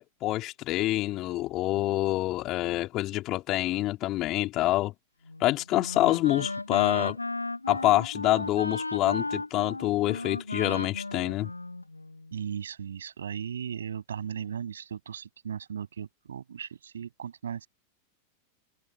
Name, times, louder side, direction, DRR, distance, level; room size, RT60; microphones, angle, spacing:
voice 1, 0.0-4.9 5.4-7.2 7.7-11.5, left 16 dB, 35° left, 4.1 m, -27 dB
Wind instrument woodwind instrument, 5.3-12.4, left 2 dB, 85° left, 1.8 m, -35 dB
voice 2, 12.3-17.7, right 8 dB, 65° right, 8.0 m, -37 dB
figure-of-eight pair, 90°, 0 cm